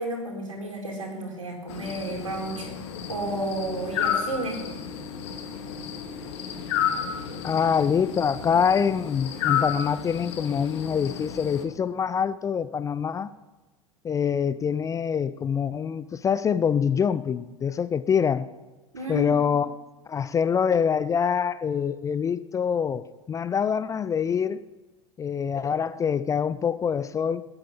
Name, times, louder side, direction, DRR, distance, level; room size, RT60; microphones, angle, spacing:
voice 1, 0.0-2.7 3.1-4.6 18.9-19.5, right 1 dB, 75° right, 4.4 m, -32 dB
sound 1, 1.7-11.6, left 8 dB, 55° left, 2.1 m, -32 dB
voice 2, 7.4-13.3 14.0-18.5 19.1-19.8 20.1-24.7 25.2-27.4, left 7 dB, 20° left, 0.5 m, -25 dB
19.0 x 8.9 x 8.5 m
figure-of-eight pair, 80°, 17 cm